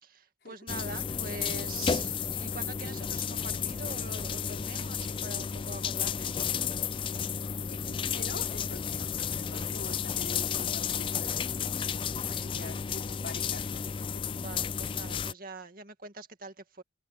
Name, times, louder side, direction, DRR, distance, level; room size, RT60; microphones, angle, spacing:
voice 1, 0.0-6.3 9.5-9.7 12.2-12.8 14.3-16.8, right 3 dB, 50° right, 2.2 m, -44 dB
sound 1, 0.7-15.3, left 7 dB, 30° left, 0.3 m, -32 dB
voice 2, 7.7-11.7 12.3-13.7 14.0-14.2, left 2 dB, 60° left, 5.2 m, -46 dB
open air
head